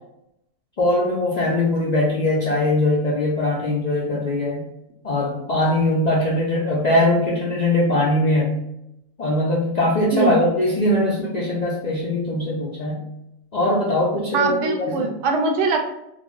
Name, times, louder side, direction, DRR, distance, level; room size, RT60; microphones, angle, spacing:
voice 1, 0.8-4.6 5.0-8.6 9.2-13.0 13.5-15.1, left 1 dB, 85° left, -5 dB, 0.3 m, -21 dB
voice 2, 14.3-15.9, right 3 dB, 70° right, 3 dB, 0.8 m, -22 dB
2.4 x 2.0 x 3.5 m, 0.84 s
omnidirectional pair, 1.4 m